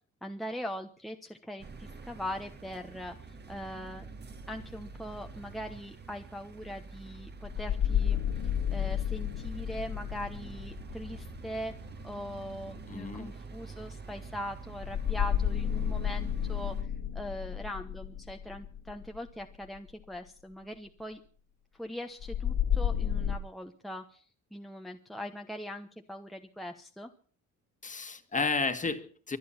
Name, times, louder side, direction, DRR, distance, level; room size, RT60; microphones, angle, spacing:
voice 1, 0.2-4.1 4.5-8.3 8.7-11.7 12.0-21.2 21.7-24.2 24.5-27.1, equal, ahead, 4 dB, 1.1 m, -41 dB
sound 1, 1.6-16.8, right 4 dB, 35° right, 1.7 m, -47 dB
sound 2, 4.4-4.5 7.4-12.2 14.8-19.9 22.2-23.4, left 9 dB, 75° left, 2.6 m, -32 dB
voice 2, 12.9-13.3 27.8-29.4, left 4 dB, 25° left, 9 dB, 1.8 m, -32 dB
24.5 x 9.4 x 5.8 m, 0.43 s
cardioid pair, 135°, 31 cm